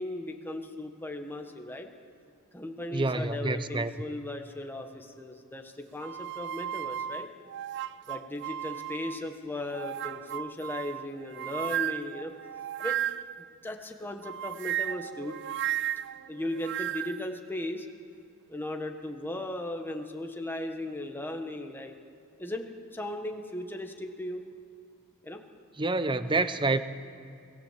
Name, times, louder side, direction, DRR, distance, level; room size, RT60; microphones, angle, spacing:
voice 1, 0.0-1.9 2.5-7.3 8.1-12.3 12.8-13.0 13.6-15.4 16.3-17.9 18.5-21.9 22.4-24.4 25.2-25.4, left 1 dB, 10° left, 4 dB, 1.4 m, -37 dB
voice 2, 2.9-3.9 25.8-26.8, right 2 dB, 20° right, 12 dB, 0.8 m, -27 dB
sound 1, 6.0-9.3 9.7-13.4 14.2-17.3, right 11 dB, 55° right, 0.4 m, -35 dB
25.0 x 17.5 x 7.5 m, 2.6 s
head